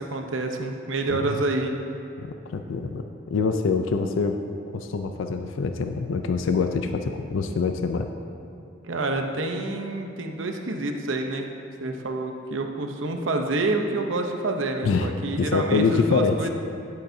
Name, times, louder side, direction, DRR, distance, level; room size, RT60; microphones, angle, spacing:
voice 1, 0.0-1.8 8.8-11.5 11.8-16.5, right 2 dB, 85° right, 4 dB, 0.7 m, -28 dB
voice 2, 1.1-1.4 2.2-3.0 3.3-4.4 4.7-8.1 14.8-15.1 15.4-16.4, left 4 dB, 90° left, 7 dB, 0.4 m, -25 dB
10.5 x 8.7 x 2.7 m, 2.8 s
head